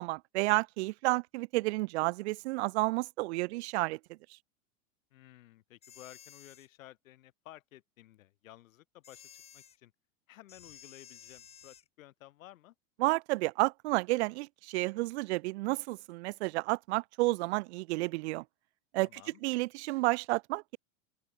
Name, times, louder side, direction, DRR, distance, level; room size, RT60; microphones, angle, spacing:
voice 1, 0.0-4.0 13.0-18.4 18.9-20.8, right 22 dB, 55° right, 0.6 m, -31 dB
voice 2, 5.1-9.9 10.3-12.7 19.0-19.4, left 15 dB, 85° left, 2.3 m, -55 dB
sound 1, 5.8-6.7 9.0-9.8 10.5-11.9, left 9 dB, 15° left, 0.9 m, -54 dB
open air
supercardioid pair, 150°, 39 cm